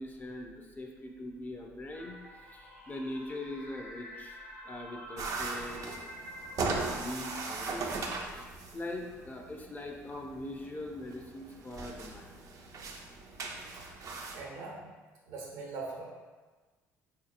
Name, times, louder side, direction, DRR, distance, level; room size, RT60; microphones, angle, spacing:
voice 1, 0.0-2.2 2.5-4.4 4.6-6.1 6.6-8.1 8.7-12.4, left 1 dB, 25° left, 2 dB, 0.5 m, -42 dB
sound 1, 1.9-7.4, equal, 85° left, 0.8 m, -48 dB
sound 2, 5.2-14.4, right 3 dB, 50° right, 0.5 m, -39 dB
voice 2, 14.3-14.9 15.3-16.0, right 3 dB, 75° right, -3 dB, 0.9 m, -41 dB
3.8 x 2.8 x 2.4 m, 1.3 s
hypercardioid pair, 60°, 7 cm